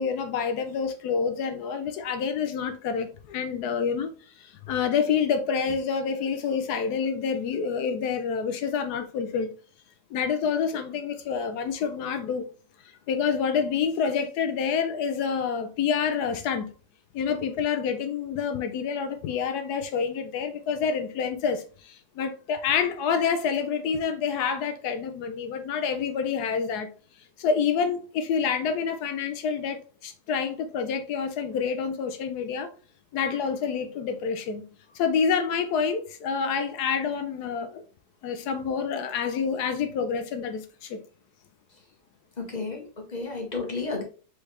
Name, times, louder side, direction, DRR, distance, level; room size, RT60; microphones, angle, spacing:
voice 1, 0.0-4.1 4.4-9.5 10.1-12.5 13.1-16.7 17.1-26.9 27.4-32.7 33.1-34.6 34.9-37.8 38.2-41.0, left 6 dB, 75° left, 0.9 m, -27 dB
voice 2, 42.4-44.0, left 3 dB, 35° left, 0.7 m, -32 dB
4.7 x 3.1 x 3.2 m
omnidirectional pair, 2.1 m